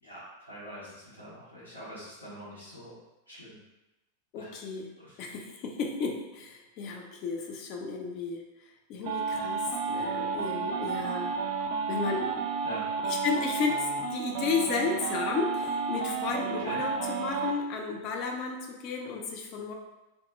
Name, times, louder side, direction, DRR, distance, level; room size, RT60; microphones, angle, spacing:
voice 1, 0.0-3.0 3.3-3.6 4.4-4.5 5.0-5.3 12.6-12.9 16.6-16.8, equal, 85° left, -9 dB, 0.7 m, -44 dB
voice 2, 4.3-4.9 5.2-8.4 8.9-11.4 11.9-12.3 13.0-19.7, left 4 dB, 40° left, 1 dB, 0.4 m, -33 dB
sound 1, 9.0-17.5, right 5 dB, 45° right, 0.3 m, -32 dB
2.0 x 2.0 x 3.0 m, 1.0 s
figure-of-eight pair, 90°, 0 cm